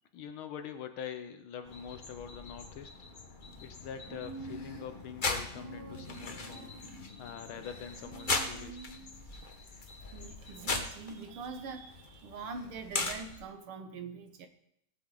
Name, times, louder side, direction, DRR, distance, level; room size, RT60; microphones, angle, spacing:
voice 1, 0.1-2.9 3.6-6.7 7.2-8.8, left 8 dB, 75° left, 8 dB, 1.5 m, -44 dB
sound 1, 1.6-13.4, left 3 dB, 30° left, 0.9 m, -39 dB
Human voice, 4.1-5.0 5.5-7.1 8.0-9.2, right 4 dB, 55° right, 1.3 m, -48 dB
voice 2, 10.1-14.5, right 4 dB, 80° right, 7 dB, 2.1 m, -43 dB
18.5 x 7.7 x 3.9 m, 0.73 s
omnidirectional pair, 2.4 m